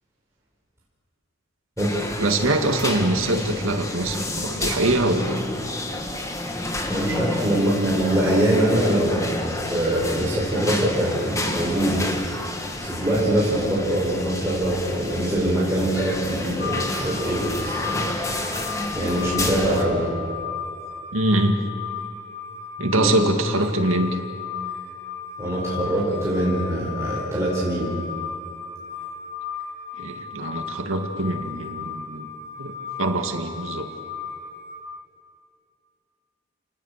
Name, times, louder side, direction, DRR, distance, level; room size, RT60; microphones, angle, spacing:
sound 1, 1.8-19.8, left 1 dB, 15° left, 1.6 m, -30 dB
voice 1, 2.2-5.5 21.1-21.6 22.8-24.2 30.0-32.3 32.6-32.7 33.0-33.9, right 1 dB, 85° right, 4 dB, 2.2 m, -23 dB
voice 2, 6.9-12.2 12.8-18.1 18.9-20.1 22.8-23.1 25.4-28.0, right 1 dB, 15° right, -7 dB, 5.1 m, -23 dB
sound 2, 16.6-34.8, left 6 dB, 50° left, 4.9 m, -35 dB
29.0 x 19.5 x 6.7 m, 2.4 s
head